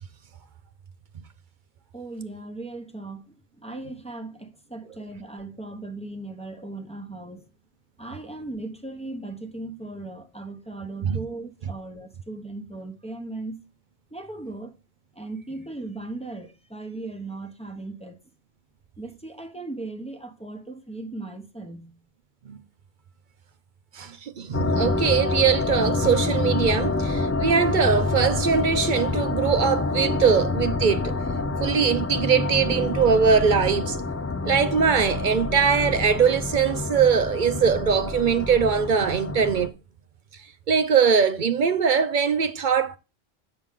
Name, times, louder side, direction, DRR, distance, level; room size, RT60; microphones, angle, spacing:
voice 1, 1.9-7.5 8.0-13.6 14.1-14.7 15.1-18.2 19.0-21.9, right 2 dB, 5° left, 0.9 m, -37 dB
voice 2, 23.9-31.1 31.6-34.0 34.4-39.7 40.7-43.0, right 6 dB, 55° right, 0.7 m, -21 dB
sound 1, 24.5-39.7, left 3 dB, 25° left, 0.3 m, -27 dB
8.8 x 6.2 x 3.7 m
omnidirectional pair, 1.1 m